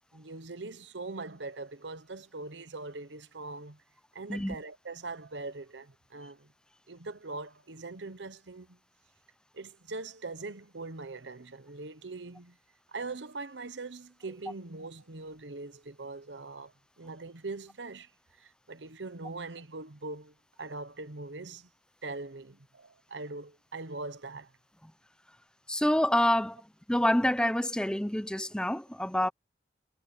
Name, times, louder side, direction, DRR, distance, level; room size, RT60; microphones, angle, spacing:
voice 1, 0.1-3.8 4.1-6.5 6.9-8.8 9.5-12.6 12.9-18.1 18.4-21.7 22.0-24.5, right 3 dB, 85° right, 1.1 m, -42 dB
voice 2, 25.7-26.6 26.9-29.3, left 1 dB, 5° left, 0.7 m, -27 dB
head